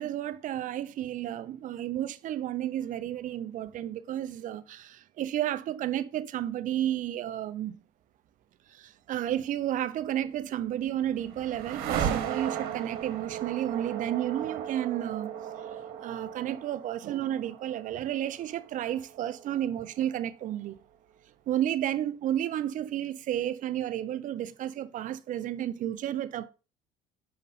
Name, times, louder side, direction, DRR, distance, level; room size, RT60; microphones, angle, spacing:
voice 1, 0.0-7.8 8.7-15.4 16.0-20.7 21.5-26.5, right 11 dB, 55° right, 0.7 m, -32 dB
sound 1, 10.4-20.5, right 9 dB, 70° right, 1.4 m, -37 dB
6.7 x 5.2 x 4.1 m
supercardioid pair, 85°, 16 cm